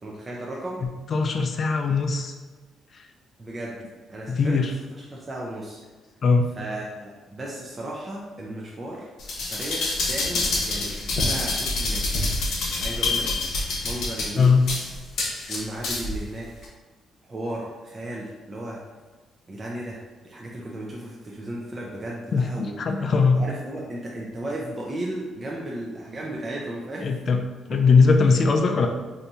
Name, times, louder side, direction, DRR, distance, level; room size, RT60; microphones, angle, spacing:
voice 1, 0.0-0.8 3.4-3.8 4.1-5.8 6.6-12.1 12.8-14.6 15.5-16.7 17.3-18.8 19.5-22.8 23.3-27.1 27.7-27.8, right 1 dB, 30° right, -4 dB, 0.5 m, -35 dB
voice 2, 1.1-2.3 4.3-4.7 6.2-6.5 14.4-14.7 22.3-23.4 27.0-27.4 27.7-28.9, left 4 dB, 50° left, 4 dB, 0.4 m, -20 dB
sound 1, 9.2-16.2 16.6-16.7, left 2 dB, 85° left, 0.8 m, -27 dB
3.4 x 2.7 x 2.8 m, 1.4 s
cardioid pair, 90°, 0 cm